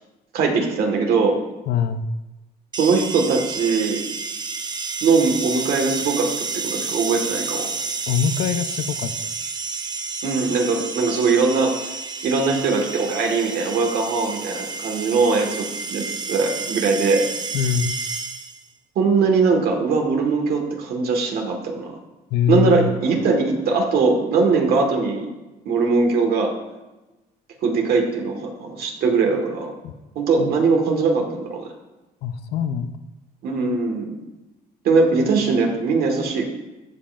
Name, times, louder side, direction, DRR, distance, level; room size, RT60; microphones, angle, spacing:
voice 1, 0.3-1.4 2.8-4.0 5.0-7.7 10.2-11.7 12.2-17.3 19.0-21.9 22.5-25.3 25.7-26.5 27.6-29.7 30.2-31.7 33.4-34.2 34.8-36.4, right 4 dB, 65° right, 2 dB, 1.7 m, -21 dB
voice 2, 1.7-2.0 8.1-9.1 17.5-17.9 22.3-22.9 29.8-29.9 30.4-30.5 32.2-32.9, left 7 dB, 75° left, 10 dB, 0.6 m, -23 dB
sound 1, 2.7-18.7, right 4 dB, 25° right, 0.6 m, -30 dB
15.5 x 5.4 x 2.6 m, 1.1 s
cardioid pair, 110°, 17 cm